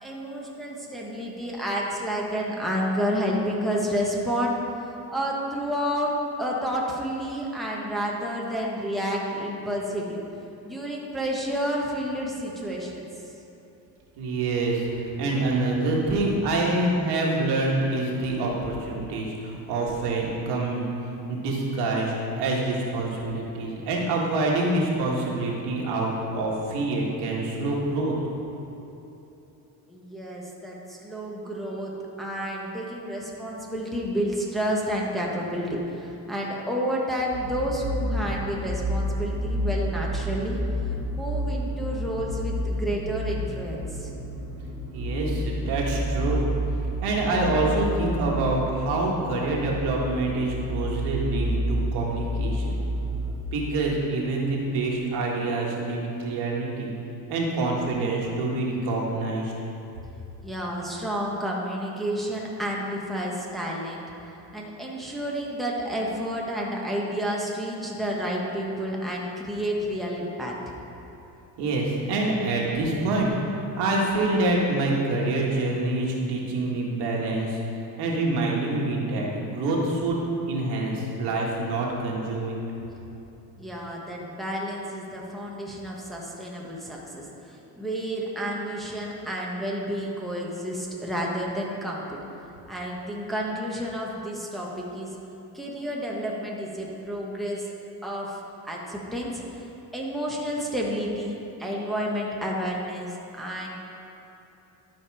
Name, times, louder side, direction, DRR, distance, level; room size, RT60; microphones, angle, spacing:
voice 1, 0.0-4.6 5.1-6.1 6.4-10.2 10.6-13.0 29.9-31.9 32.2-40.6 41.1-44.1 60.4-64.0 64.5-70.5 83.6-92.0 92.7-95.1 95.5-97.7 98.0-99.6 99.9-103.7, equal, ahead, -4 dB, 1.2 m, -30 dB
voice 2, 14.2-20.9 21.3-28.1 44.9-46.5 47.0-52.7 53.5-56.9 57.3-59.5 71.6-73.3 73.8-77.6 78.0-82.6, right 2 dB, 90° right, -2 dB, 1.8 m, -26 dB
sound 1, 37.3-53.4, equal, 60° right, 1.7 m, -30 dB
12.0 x 5.2 x 4.8 m, 3.0 s
cardioid pair, 125°, 39 cm